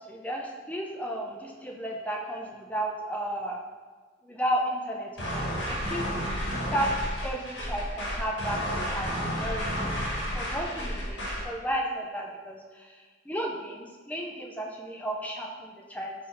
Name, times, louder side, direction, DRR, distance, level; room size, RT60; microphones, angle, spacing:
voice 1, 0.0-3.6 4.2-6.1 6.7-6.9 7.2-16.1, right 1 dB, 5° left, 0 dB, 0.3 m, -33 dB
sound 1, 5.2-11.5, equal, 55° left, 1.1 m, -31 dB
4.2 x 2.5 x 4.2 m, 1.4 s
head